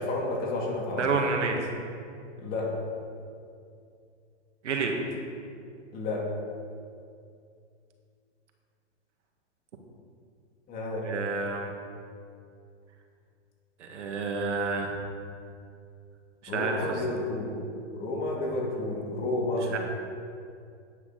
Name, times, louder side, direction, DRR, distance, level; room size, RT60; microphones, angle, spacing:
voice 1, 0.0-1.0 2.4-2.7 5.9-6.2 10.7-11.0 16.5-17.5 17.9-19.8, left 2 dB, 25° left, -2 dB, 2.3 m, -30 dB
voice 2, 1.0-1.6 4.6-4.9 11.0-11.7 13.8-15.0 16.4-17.0 19.6-19.8, right 4 dB, 80° right, 3 dB, 1.8 m, -29 dB
11.0 x 9.7 x 4.0 m, 2.4 s
hypercardioid pair, 145°, 35 cm